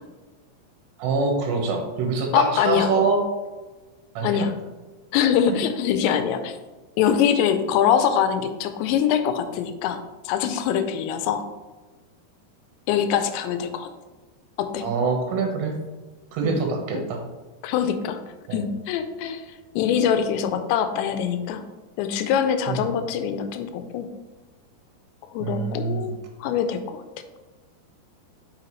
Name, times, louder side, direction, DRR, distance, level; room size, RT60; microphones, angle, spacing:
voice 1, 1.0-3.2 4.2-4.5 14.8-15.7 16.3-17.2 18.5-18.6 22.7-22.8 25.4-26.1, right 4 dB, 80° right, 2 dB, 3.3 m, -25 dB
voice 2, 2.3-2.9 4.2-4.5 5.1-6.6 7.0-11.4 12.9-13.9 14.6-14.9 16.4-16.6 16.9-17.0 17.6-18.2 18.5-19.5 19.8-21.6 22.0-24.1 25.3-26.1 26.4-27.0, left 8 dB, 90° left, 9 dB, 2.9 m, -23 dB
7.6 x 5.8 x 3.1 m, 1.3 s
omnidirectional pair, 5.0 m